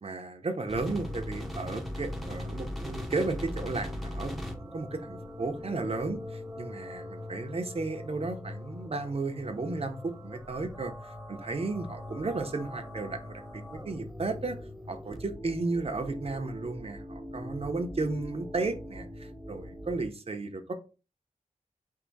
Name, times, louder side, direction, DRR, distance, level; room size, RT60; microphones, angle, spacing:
voice 1, 0.0-14.6 14.9-20.7, right 3 dB, 45° right, 0.8 m, -34 dB
sound 1, 0.7-20.0, left 1 dB, ahead, 0.8 m, -41 dB
4.7 x 2.7 x 4.0 m
wide cardioid pair, 100°, 14 cm